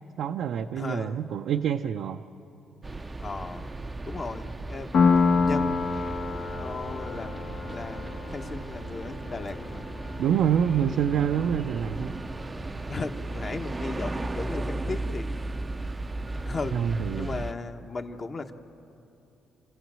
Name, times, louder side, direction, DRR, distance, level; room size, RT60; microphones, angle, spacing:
voice 1, 0.2-2.2 10.2-12.2 16.7-17.4, right 8 dB, 75° right, 4 dB, 0.5 m, -26 dB
voice 2, 0.8-1.2 3.2-3.6 4.0-5.0 5.3-5.9 6.5-9.8 12.9-15.3 16.4-16.8 17.2-18.5, left 3 dB, 35° left, 6 dB, 1.2 m, -36 dB
sound 1, 2.8-17.5, right 2 dB, 20° right, 0.5 m, -36 dB
Piano, 4.9-12.3, left 4 dB, 75° left, 1.7 m, -28 dB
27.5 x 16.0 x 7.5 m, 2.9 s
cardioid pair, 90°, 0 cm